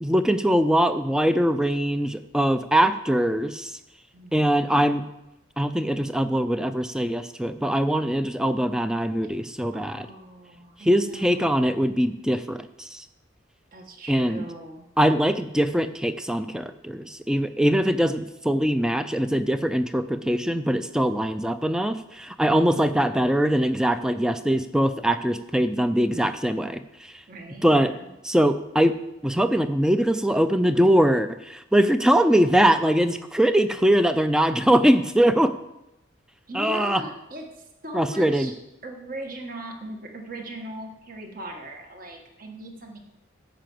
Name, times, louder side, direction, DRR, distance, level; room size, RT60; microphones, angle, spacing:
voice 1, 0.0-3.7 4.3-5.0 5.6-10.1 10.8-13.0 14.1-14.4 15.0-26.8 27.6-27.9 28.2-29.0 29.2-35.5 36.5-37.0 37.9-38.5, equal, 5° right, 10 dB, 0.4 m, -22 dB
voice 2, 4.1-4.8 9.7-11.9 13.7-14.8 22.6-23.0 27.3-28.1 36.5-38.5 38.8-43.0, right 1 dB, 45° right, 3 dB, 1.5 m, -39 dB
10.0 x 5.7 x 7.7 m, 0.91 s
head